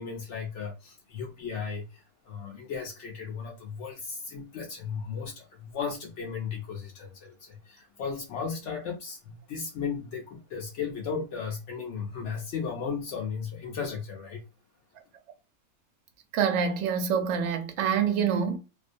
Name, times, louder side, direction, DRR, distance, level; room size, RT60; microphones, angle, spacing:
voice 1, 0.0-14.4, left 6 dB, 65° left, 0.7 m, -35 dB
voice 2, 16.3-18.6, right 7 dB, 65° right, 0.7 m, -26 dB
2.5 x 2.1 x 2.5 m
omnidirectional pair, 1.6 m